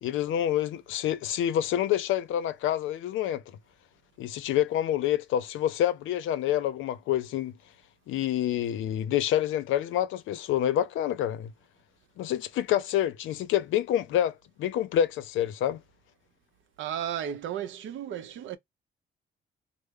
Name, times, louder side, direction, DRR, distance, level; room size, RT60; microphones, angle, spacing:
voice 1, 0.0-3.4 4.2-7.5 8.1-11.5 12.2-15.8, left 11 dB, 80° left, 0.5 m, -27 dB
voice 2, 16.8-18.6, right 9 dB, 75° right, 0.7 m, -34 dB
3.2 x 2.0 x 3.4 m
cardioid pair, 90°, 20 cm